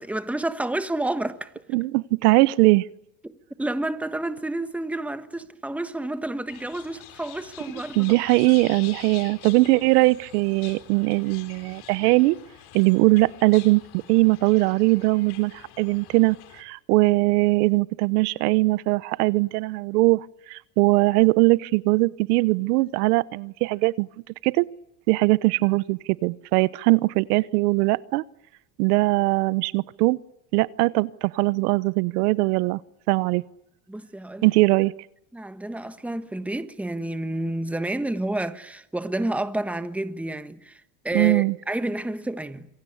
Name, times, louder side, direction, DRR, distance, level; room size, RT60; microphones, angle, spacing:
voice 1, 0.0-1.6 3.2-8.2 33.9-34.5 35.3-42.7, right 1 dB, 5° right, 1.4 m, -30 dB
voice 2, 1.7-2.9 8.0-12.4 12.7-24.1 24.4-24.7 25.1-28.2 28.8-30.2 30.5-32.8 33.1-33.4 34.4-34.9 41.1-41.5, right 23 dB, 75° right, 1.1 m, -21 dB
sound 1, 6.5-16.6, left 13 dB, 55° left, 4.3 m, -46 dB
27.0 x 23.0 x 8.6 m
supercardioid pair, 130°, 46 cm